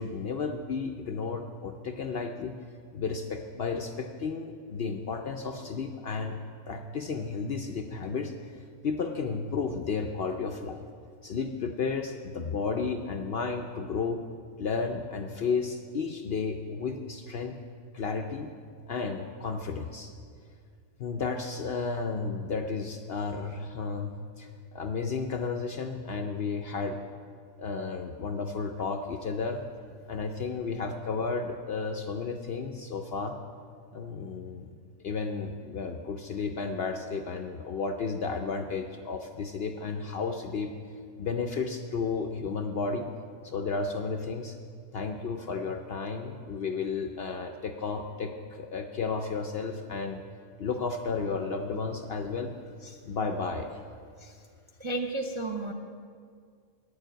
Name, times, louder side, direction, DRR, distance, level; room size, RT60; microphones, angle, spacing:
voice 1, 0.0-2.5 2.9-6.4 6.7-8.3 8.8-10.8 11.2-14.2 14.6-17.6 17.9-18.5 18.9-20.1 21.0-27.0 27.6-29.6 30.1-33.4 33.9-40.8 41.2-43.1 43.4-44.6 44.9-50.2 50.6-52.5 53.1-53.8, left 4 dB, 60° left, 5 dB, 0.6 m, -33 dB
voice 2, 54.8-55.7, right 2 dB, 40° right, 0 dB, 0.4 m, -33 dB
9.5 x 7.1 x 9.1 m, 2.1 s
omnidirectional pair, 1.5 m